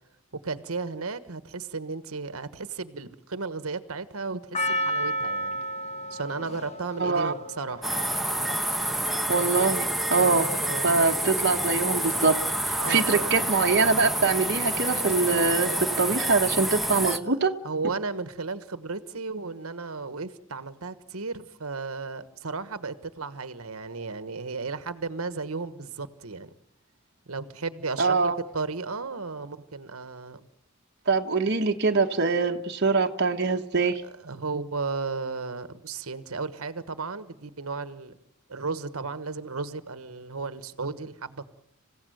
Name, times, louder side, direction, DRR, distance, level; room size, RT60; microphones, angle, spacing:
voice 1, 0.3-5.6 6.1-7.9 10.2-11.0 12.8-13.5 17.6-26.5 27.3-30.4 33.8-38.1 38.5-41.5, right 4 dB, 90° right, 12 dB, 1.3 m, -34 dB
Percussion, 4.5-8.9 9.5-9.6, equal, 30° left, 1.6 m, -32 dB
voice 2, 7.0-7.3 9.3-10.5 10.8-12.3 12.7-17.5 28.0-28.4 31.1-34.0, right 4 dB, 50° right, 4 dB, 1.3 m, -23 dB
sound 1, 7.8-17.2, right 1 dB, ahead, 1.2 m, -28 dB
27.5 x 16.0 x 9.3 m, 0.80 s
head